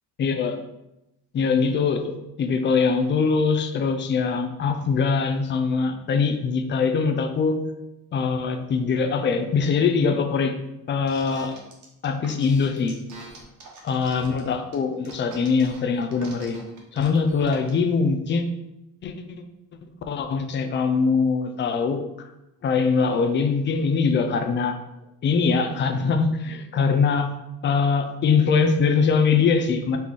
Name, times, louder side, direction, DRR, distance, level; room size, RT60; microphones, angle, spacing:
voice 1, 0.2-0.6 1.3-7.6 8.1-10.5 10.9-11.5 12.0-13.0 13.8-16.6 16.9-18.4 19.0-19.1 20.1-22.0 22.6-24.8 25.2-27.3 27.6-30.0, left 5 dB, 30° left, 7 dB, 0.4 m, -22 dB
sound 1, 11.1-17.8, right 3 dB, 55° right, 1.1 m, -44 dB
4.1 x 3.1 x 3.6 m, 0.92 s
cardioid pair, 130°, 37 cm